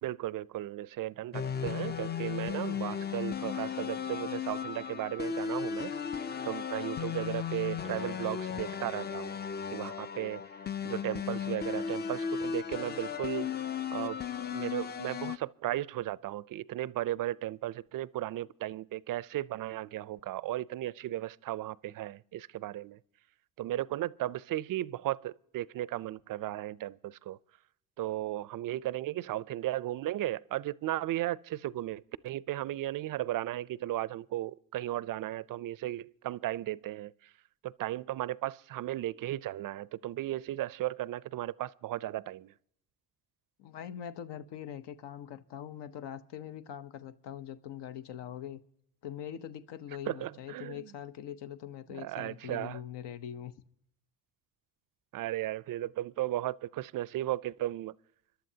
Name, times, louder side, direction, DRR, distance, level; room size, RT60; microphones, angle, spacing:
voice 1, 0.0-5.9 6.5-9.3 9.7-10.4 10.8-13.6 13.9-14.2 14.5-23.0 23.6-27.4 28.0-37.1 37.6-42.5 50.1-50.9 51.9-52.8 55.1-57.9, right 14 dB, 50° right, 0.5 m, -35 dB
sound 1, 1.3-15.4, left 7 dB, 25° left, 0.4 m, -35 dB
voice 2, 43.6-48.6 49.0-53.5, left 10 dB, 65° left, 0.8 m, -42 dB
25.5 x 11.5 x 2.8 m
supercardioid pair, 70°, 45 cm